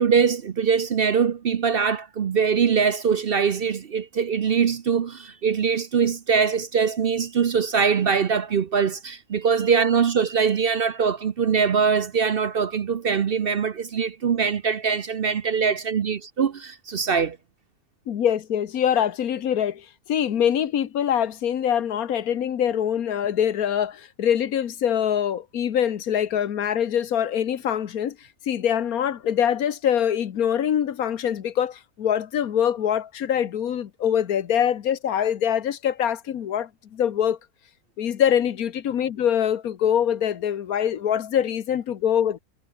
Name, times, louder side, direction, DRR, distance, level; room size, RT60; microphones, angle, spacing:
voice 1, 0.0-17.4, right 6 dB, 50° right, 0.8 m, -22 dB
voice 2, 18.1-28.2 28.5-37.4 38.0-42.4, left 9 dB, 80° left, 1.5 m, -24 dB
omnidirectional pair, 1.5 m